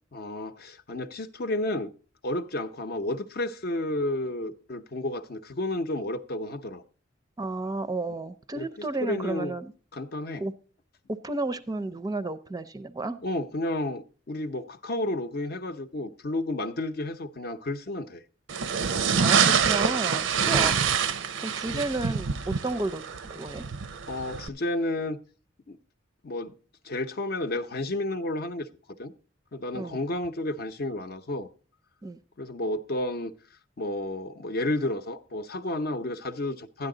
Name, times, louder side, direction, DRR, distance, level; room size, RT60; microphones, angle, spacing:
voice 1, 0.1-1.9 2.2-6.8 8.5-8.7 9.0-9.6 9.9-10.4 13.2-18.2 20.4-20.8 21.7-21.8 24.1-25.2 25.7-25.8 26.2-26.5 26.8-28.7 29.0-29.1 29.5-31.5 32.4-33.3 33.8-36.9, left 1 dB, 55° left, 0.7 m, -31 dB
voice 2, 7.4-9.7 10.4-10.5 11.1-13.2 19.1-20.8 21.4-23.0 23.3-23.7 29.7-30.0 32.0-32.2, right 2 dB, 20° right, 0.5 m, -32 dB
sound 1, 18.5-24.5, right 6 dB, 85° right, 0.6 m, -26 dB
12.0 x 10.0 x 3.8 m
head